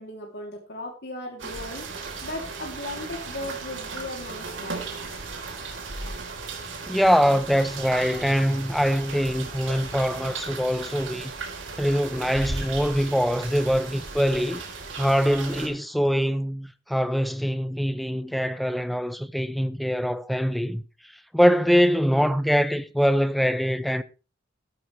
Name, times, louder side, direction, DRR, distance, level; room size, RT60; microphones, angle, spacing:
voice 1, 0.0-5.1, left 1 dB, 60° left, 3.0 m, -37 dB
sound 1, 1.4-15.7, right 4 dB, 75° right, 3.8 m, -36 dB
voice 2, 6.9-11.3 11.8-14.6 14.9-20.8 21.3-24.0, equal, ahead, 0.8 m, -23 dB
14.5 x 13.0 x 3.3 m
head